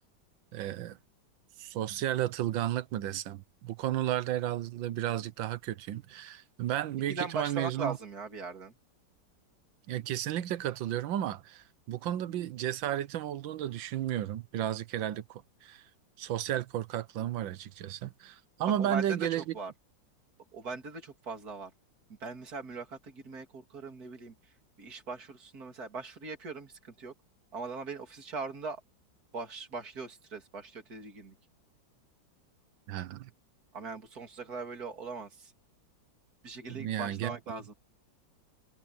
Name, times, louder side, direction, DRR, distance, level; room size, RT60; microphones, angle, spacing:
voice 1, 0.5-1.0 1.6-8.0 9.9-15.8 16.2-19.5 32.9-33.3 36.7-37.4, right 12 dB, 85° right, 1.6 m, -33 dB
voice 2, 7.1-8.8 18.8-19.7 20.5-21.7 22.2-24.3 24.8-27.1 27.5-28.8 29.3-31.3 33.7-35.5 36.4-37.7, right 4 dB, 50° right, 3.7 m, -40 dB
omnidirectional pair, 2.0 m